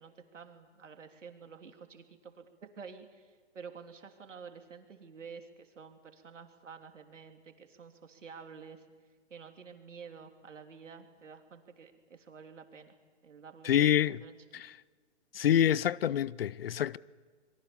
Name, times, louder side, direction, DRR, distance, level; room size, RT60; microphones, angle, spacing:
voice 1, 0.0-8.8 9.3-12.9 13.2-13.9 14.2-14.4, right 6 dB, 85° right, 3.3 m, -50 dB
voice 2, 13.6-14.2 14.5-14.7 15.3-17.0, left 10 dB, 55° left, 0.6 m, -26 dB
27.5 x 23.0 x 7.1 m
hypercardioid pair, 155°, 36 cm